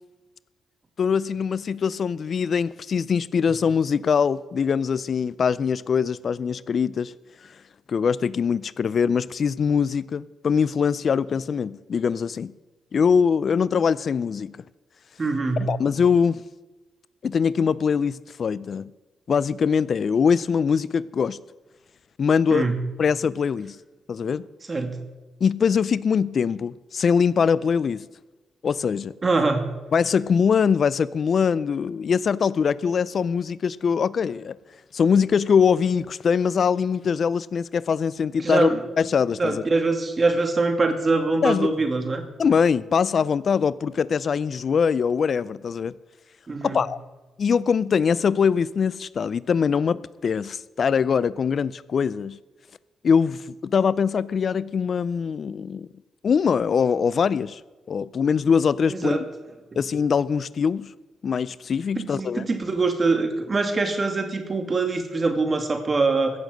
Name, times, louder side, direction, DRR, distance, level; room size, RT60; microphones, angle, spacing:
voice 1, 1.0-7.1 7.9-12.5 12.9-14.5 15.6-16.4 17.2-18.9 19.3-21.4 22.2-22.7 23.0-23.8 24.1-24.5 25.4-28.0 28.6-29.1 29.9-34.6 34.9-38.7 39.0-39.6 41.4-41.7 42.4-45.9 46.6-47.0 47.4-52.4 53.0-55.9 56.2-57.6 57.9-59.3 59.8-60.9 61.2-62.5, left 6 dB, 55° left, 0.4 m, -22 dB
voice 2, 15.2-15.7 22.5-22.8 24.7-25.0 29.2-29.7 38.4-38.8 39.4-42.2 46.5-46.8 58.9-59.2 62.0-66.3, right 3 dB, 35° right, 2.5 m, -23 dB
15.5 x 7.2 x 7.8 m
supercardioid pair, 60°, 0 cm